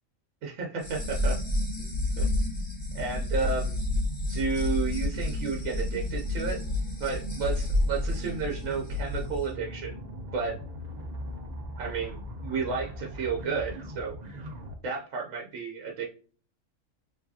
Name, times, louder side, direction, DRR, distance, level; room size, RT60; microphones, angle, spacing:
voice 1, 0.4-1.4 1.8-1.9 2.2-2.3 2.9-3.8 4.3-6.6 7.0-10.0 10.3-10.6 11.8-14.2 14.8-16.1, right 5 dB, 80° right, 0 dB, 1.2 m, -32 dB
sound 1, 0.8-9.4, left 2 dB, 20° left, 2.3 m, -30 dB
sound 2, 2.3-14.8, equal, 45° right, 0.6 m, -42 dB
4.8 x 3.1 x 2.7 m, 0.41 s
omnidirectional pair, 1.4 m